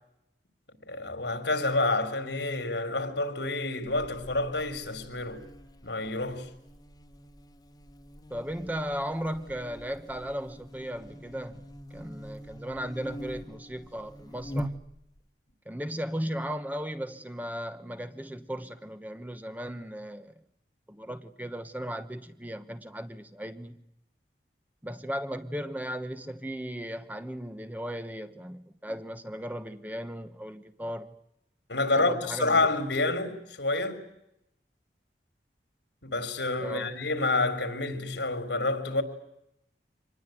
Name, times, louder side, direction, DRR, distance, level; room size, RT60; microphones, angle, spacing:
voice 1, 0.9-5.4 5.8-6.5 31.7-34.0 36.0-39.0, left 2 dB, 90° left, 3.7 m, -28 dB
Buzz, 3.9-15.3, equal, 20° left, 1.5 m, -43 dB
voice 2, 8.3-11.6 11.9-14.7 15.6-20.3 20.9-23.8 24.8-31.1 32.0-32.7 36.6-36.9, equal, 10° right, 1.0 m, -36 dB
25.5 x 20.0 x 9.3 m
head